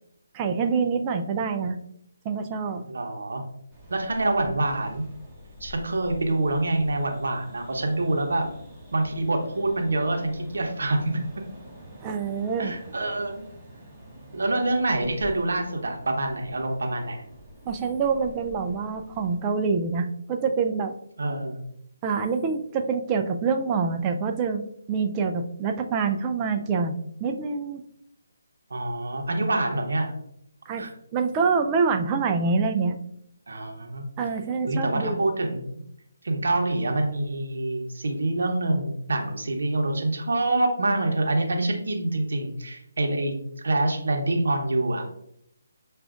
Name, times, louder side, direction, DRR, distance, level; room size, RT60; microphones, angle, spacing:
voice 1, 0.3-1.8 2.2-2.9 12.0-12.7 17.7-20.9 22.0-27.8 30.7-30.9 31.1-33.0 34.2-35.2, right 5 dB, 20° right, 5 dB, 0.3 m, -26 dB
voice 2, 2.9-3.4 3.9-5.0 5.6-8.4 8.9-11.2 12.6-13.5 14.3-17.2 21.2-21.6 28.7-30.1 30.8-30.9 33.5-34.1 34.7-35.8 36.2-43.3 43.6-45.0, right 2 dB, 70° right, 3 dB, 0.8 m, -26 dB
sound 1, 3.7-19.3, left 1 dB, 5° right, 1.0 m, -47 dB
6.1 x 2.4 x 2.4 m, 0.73 s
figure-of-eight pair, 155°, 0 cm